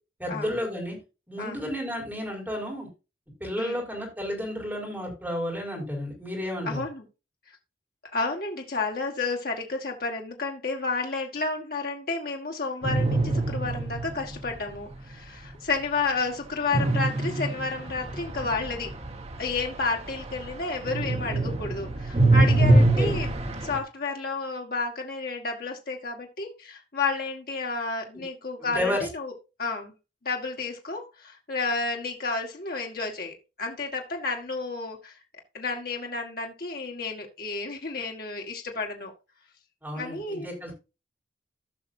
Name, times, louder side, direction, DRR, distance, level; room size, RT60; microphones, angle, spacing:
voice 1, 0.2-1.0 1.3-2.9 3.4-6.8 22.7-23.1 28.6-29.1 39.8-40.7, left 1 dB, 10° right, -2 dB, 5.0 m, -32 dB
voice 2, 6.6-7.0 8.1-18.9 19.4-29.3 29.6-29.9 30.2-35.1 35.5-39.1 39.9-40.7, left 3 dB, 55° left, 1 dB, 1.7 m, -31 dB
sound 1, 12.8-14.5 16.7-20.5 20.8-23.8, right 2 dB, 35° right, 1.3 m, -24 dB
16.0 x 6.0 x 2.7 m, 0.29 s
head